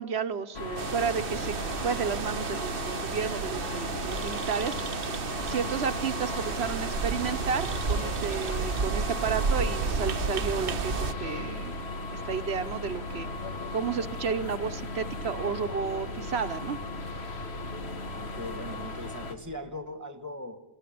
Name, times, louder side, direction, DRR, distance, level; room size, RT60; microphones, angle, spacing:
voice 1, 0.0-1.5 1.8-4.8 5.5-13.3 13.7-16.8, right 6 dB, 80° right, 7 dB, 1.2 m, -32 dB
sound 1, 0.5-19.4, left 2 dB, 85° left, 1.8 m, -36 dB
sound 2, 0.8-11.1, right 5 dB, 60° right, 1.1 m, -32 dB
voice 2, 18.1-20.6, left 1 dB, 15° right, 10 dB, 1.8 m, -40 dB
25.0 x 16.0 x 9.4 m, 1.3 s
omnidirectional pair, 1.1 m